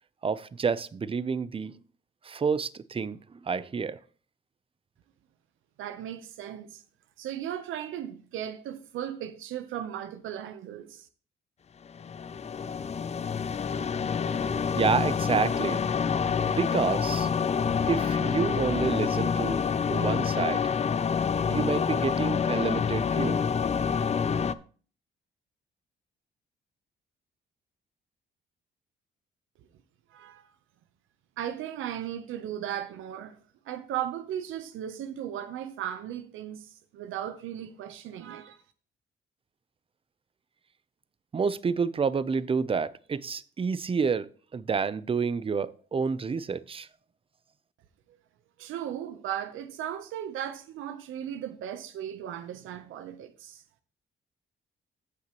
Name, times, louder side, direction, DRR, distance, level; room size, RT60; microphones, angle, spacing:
voice 1, 0.2-1.8 2.2-4.0 14.7-15.8 16.5-17.3 17.9-19.6 19.9-20.6 21.5-23.4 41.3-44.3 44.5-46.9, right 5 dB, 25° right, 0.6 m, -29 dB
voice 2, 5.8-6.8 7.2-11.1 30.1-30.5 31.4-33.4 33.7-38.6 48.1-48.2 48.6-53.6, right 10 dB, 85° right, 0.8 m, -36 dB
sound 1, 11.9-24.5, left 6 dB, 35° left, 0.5 m, -27 dB
16.0 x 5.8 x 3.0 m
cardioid pair, 90°, 20 cm